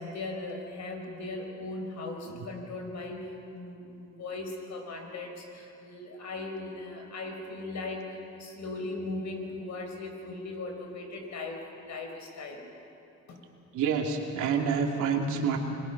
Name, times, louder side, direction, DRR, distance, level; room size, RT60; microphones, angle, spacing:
voice 1, 0.0-12.6 13.3-13.4, left 2 dB, 65° left, 3 dB, 4.7 m, -38 dB
voice 2, 13.7-15.6, right 6 dB, 85° right, 2 dB, 2.6 m, -28 dB
26.5 x 22.0 x 5.9 m, 2.8 s
cardioid pair, 90°, 30 cm